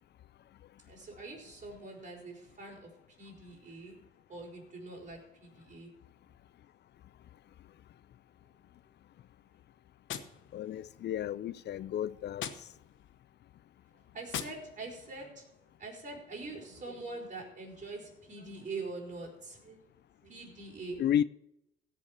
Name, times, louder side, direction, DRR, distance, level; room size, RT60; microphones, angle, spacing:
voice 1, 0.8-4.0 4.3-5.9 8.4-8.7 9.4-9.5 13.9-15.5 15.8-19.8 20.2-21.0, right 3 dB, 40° right, 5.0 m, -44 dB
Gunshot gunfire, 10.1-11.2 12.3-13.2 14.3-15.2, left 9 dB, 75° left, 1.1 m, -43 dB
voice 2, 10.5-12.4 21.0-21.2, left 10 dB, 60° left, 0.4 m, -32 dB
16.5 x 5.8 x 7.4 m
cardioid pair, 90°, 20 cm